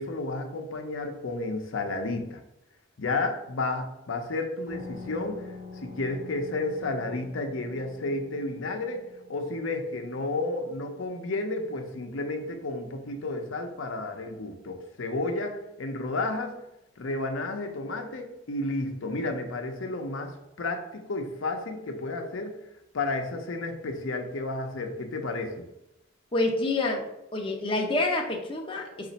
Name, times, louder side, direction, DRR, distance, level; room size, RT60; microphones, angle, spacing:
voice 1, 0.0-2.4 3.0-5.5 5.8-9.0 9.3-16.5 17.0-22.6 22.9-25.7, left 2 dB, 75° left, 4 dB, 0.6 m, -32 dB
sound 1, 4.7-13.9, left 4 dB, 35° right, 1.0 m, -47 dB
voice 2, 26.3-27.0 27.3-29.1, left 2 dB, 25° left, 0 dB, 0.5 m, -27 dB
5.2 x 2.5 x 4.0 m, 0.87 s
head